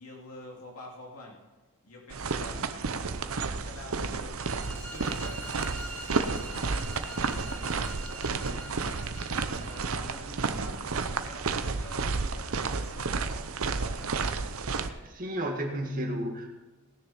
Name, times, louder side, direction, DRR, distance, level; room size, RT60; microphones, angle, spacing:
voice 1, 0.0-1.4 1.8-14.4, left 1 dB, 75° left, -1 dB, 2.4 m, -49 dB
sound 1, 2.1-14.9, right 4 dB, 70° right, 0.8 m, -31 dB
sound 2, 4.4-10.2, equal, 5° left, 1.6 m, -45 dB
voice 2, 14.7-16.5, right 1 dB, 40° right, 2 dB, 1.8 m, -33 dB
18.5 x 6.8 x 5.8 m, 1.2 s
head